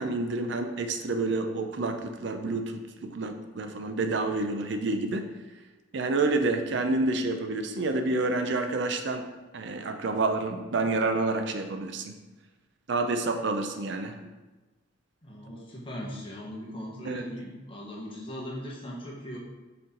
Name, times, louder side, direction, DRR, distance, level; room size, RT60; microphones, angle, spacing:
voice 1, 0.0-5.3 5.9-9.3 9.5-12.1 12.9-14.3 17.1-17.2, right 3 dB, 60° right, 7 dB, 0.5 m, -29 dB
voice 2, 15.2-19.4, equal, 30° left, -3 dB, 1.2 m, -39 dB
6.4 x 4.3 x 3.8 m, 1.2 s
head